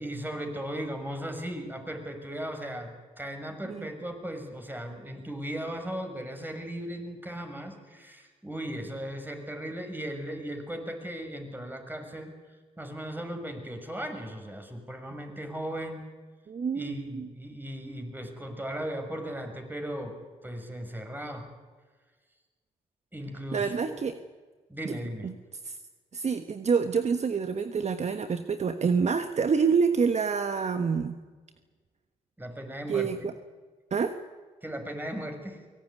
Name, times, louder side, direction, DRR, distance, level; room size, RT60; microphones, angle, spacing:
voice 1, 0.0-12.3 12.8-16.0 16.7-20.2 20.4-21.5 23.1-23.9 24.7-25.3 32.4-33.1 34.6-35.6, right 1 dB, 10° right, 5 dB, 6.3 m, -37 dB
voice 2, 16.5-17.3 23.5-24.1 24.8-25.0 25.2-25.3 25.6-25.8 26.1-31.2 32.9-33.3 33.9-34.2, right 5 dB, 50° right, 8 dB, 1.3 m, -27 dB
23.5 x 18.0 x 9.7 m, 1.4 s
supercardioid pair, 55°, 15 cm